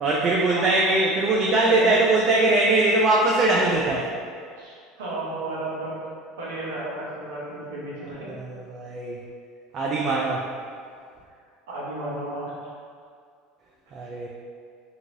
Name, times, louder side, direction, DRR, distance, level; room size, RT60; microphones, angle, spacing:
voice 1, 0.0-4.1 8.3-9.2 9.7-10.4 13.9-14.3, right 2 dB, 45° right, -3 dB, 0.4 m, -21 dB
voice 2, 1.6-2.0 4.6-5.9 6.4-8.3 11.7-12.5, right 2 dB, 85° right, -7 dB, 0.9 m, -33 dB
2.8 x 2.6 x 2.7 m, 2.2 s
supercardioid pair, 95°, 0 cm